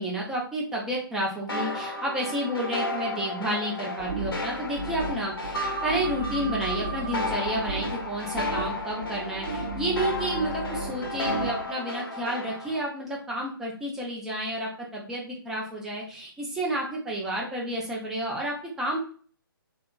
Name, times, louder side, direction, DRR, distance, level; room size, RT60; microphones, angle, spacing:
voice 1, 0.0-19.0, right 1 dB, 5° right, -3 dB, 0.3 m, -31 dB
sound 1, 1.5-12.8, left 2 dB, 75° left, 0.8 m, -33 dB
sound 2, 4.0-11.7, right 2 dB, 60° right, 0.6 m, -35 dB
2.8 x 2.3 x 2.2 m, 0.42 s
figure-of-eight pair, 145°, 12 cm